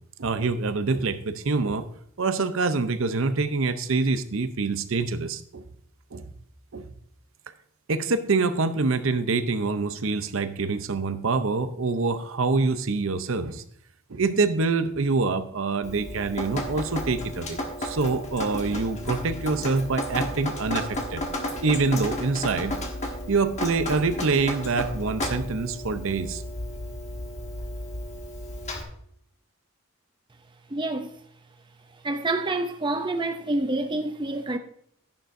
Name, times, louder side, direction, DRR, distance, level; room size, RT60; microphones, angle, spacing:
voice 1, 0.2-1.9 2.2-5.6 6.1-6.2 6.7-6.9 7.9-13.6 14.1-21.2 21.6-22.8 23.3-26.4, right 4 dB, 65° right, 0.7 m, -25 dB
Drip, 15.8-28.8, left 1 dB, 30° left, 1.4 m, -33 dB
voice 2, 30.7-31.1 32.0-34.6, right 2 dB, 20° right, 0.5 m, -27 dB
12.0 x 10.5 x 2.6 m
head